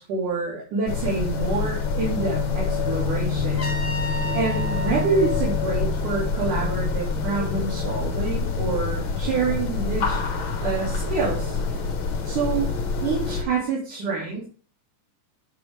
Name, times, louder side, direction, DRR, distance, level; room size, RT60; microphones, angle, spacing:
voice 1, 0.0-3.7 4.3-10.2 10.6-11.6 12.2-12.7 13.0-14.5, right 4 dB, 80° right, -4 dB, 4.0 m, -27 dB
sound 1, 0.9-13.4, left 4 dB, 50° left, 1.9 m, -26 dB
Trumpet, 3.6-6.5, right 1 dB, 25° left, 1.1 m, -35 dB
9.0 x 7.0 x 3.4 m, 0.37 s
omnidirectional pair, 3.5 m